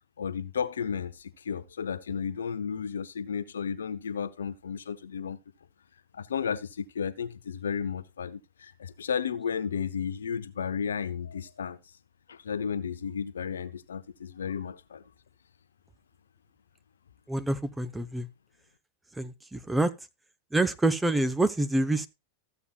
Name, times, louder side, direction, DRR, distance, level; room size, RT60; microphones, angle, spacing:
voice 1, 0.2-5.4 6.1-11.8 12.3-15.0, left 7 dB, 70° left, 0.8 m, -33 dB
voice 2, 17.3-18.3 19.2-19.9 20.5-22.1, right 2 dB, 5° right, 0.8 m, -27 dB
14.5 x 8.2 x 2.4 m
figure-of-eight pair, 90°, 0 cm